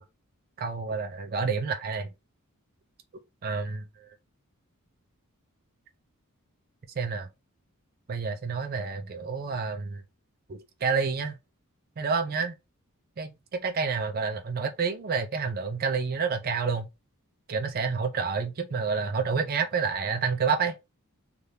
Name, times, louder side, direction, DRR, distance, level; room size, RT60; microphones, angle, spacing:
voice 1, 0.6-2.1 3.4-4.1 7.0-7.3 8.1-10.0 10.5-11.4 12.0-12.6 13.2-16.9 17.5-20.7, right 5 dB, 45° right, 0.5 m, -29 dB
3.3 x 2.4 x 2.7 m
head